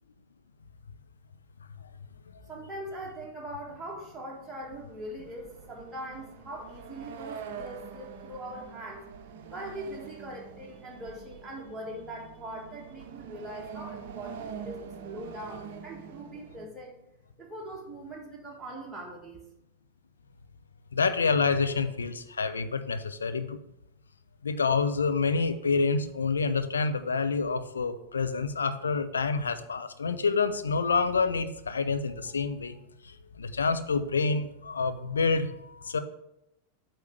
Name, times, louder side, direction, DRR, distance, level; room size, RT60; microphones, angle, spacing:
voice 1, 2.5-9.1 9.5-16.9 17.4-19.4, right 1 dB, 10° right, -3 dB, 1.4 m, -41 dB
sound 1, 3.7-16.7, right 7 dB, 50° right, 0.7 m, -45 dB
voice 2, 20.9-23.6 24.4-32.8 33.4-36.0, left 4 dB, 70° left, 10 dB, 0.5 m, -27 dB
8.2 x 3.2 x 6.4 m, 0.84 s
figure-of-eight pair, 90°, 0 cm